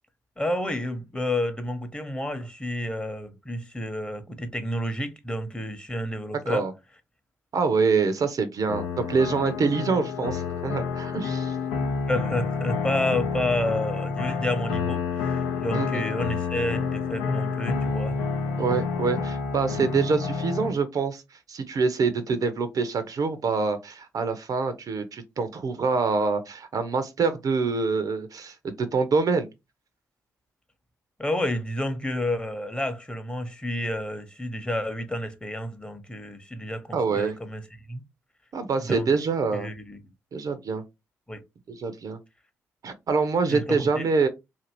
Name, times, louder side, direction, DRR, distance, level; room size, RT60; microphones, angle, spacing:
voice 1, 0.4-6.7 12.1-18.2 31.2-37.6 37.9-38.0 38.8-39.1 39.5-40.0 41.3-41.4 43.5-44.1, left 1 dB, 15° left, 0.8 m, -30 dB
voice 2, 7.5-11.6 15.7-16.1 18.6-29.5 36.9-37.4 38.5-39.7 40.3-40.8 41.7-42.2 42.8-44.3, right 4 dB, 50° right, 0.5 m, -25 dB
sound 1, 8.7-20.7, left 5 dB, 80° left, 0.5 m, -29 dB
2.7 x 2.6 x 2.9 m
hypercardioid pair, 45°, 8 cm